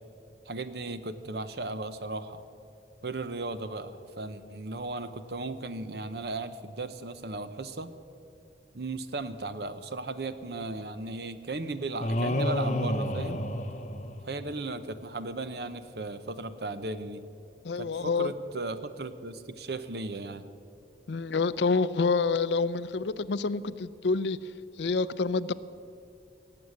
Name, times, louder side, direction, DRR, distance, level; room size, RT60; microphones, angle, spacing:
voice 1, 0.5-2.4 3.0-7.9 8.7-13.4 14.2-17.3 17.8-20.5, right 2 dB, 60° right, 12 dB, 0.8 m, -36 dB
sound 1, 12.0-14.5, left 1 dB, 40° left, 0.9 m, -29 dB
voice 2, 17.6-18.3 21.1-24.4 24.8-25.5, left 4 dB, 75° left, 17 dB, 0.5 m, -27 dB
17.5 x 7.8 x 9.5 m, 2.5 s
head